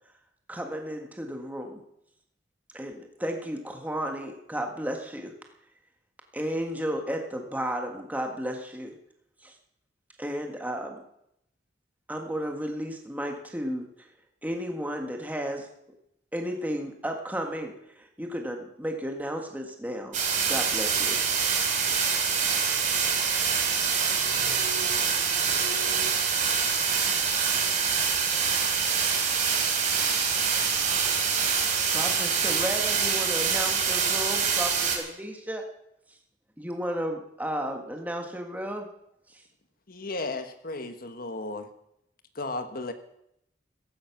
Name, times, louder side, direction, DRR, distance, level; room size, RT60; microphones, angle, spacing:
voice 1, 0.5-1.8 2.7-5.3 6.3-8.9 9.4-9.5 10.2-11.0 12.1-13.8 14.4-15.7 16.3-20.2 20.5-21.2 31.9-35.6 36.1-36.2 36.6-38.9 39.3-39.4, equal, 10° right, 3 dB, 1.6 m, -33 dB
sound 1, 20.1-35.0, right 6 dB, 45° right, 3.9 m, -25 dB
voice 2, 23.5-26.2, right 2 dB, 70° right, 1 dB, 3.8 m, -43 dB
voice 3, 39.9-41.7 42.3-42.9, left 2 dB, 55° left, 8 dB, 1.5 m, -34 dB
16.0 x 15.0 x 6.0 m, 0.79 s
head